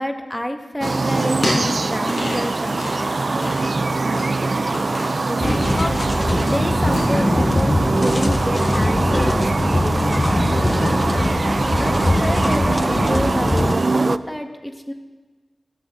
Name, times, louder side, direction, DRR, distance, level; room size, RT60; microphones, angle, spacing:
voice 1, 0.0-4.5 4.8-6.2 6.4-11.2 11.7-14.9, equal, 5° left, 5 dB, 1.5 m, -29 dB
sound 1, 0.8-7.0, left 1 dB, 75° left, 5.1 m, -31 dB
sound 2, 0.8-14.2, right 3 dB, 55° right, 0.4 m, -22 dB
sound 3, 5.4-13.7, left 2 dB, 30° left, 0.6 m, -21 dB
16.5 x 15.0 x 3.7 m, 1.3 s
wide cardioid pair, 60°, 0 cm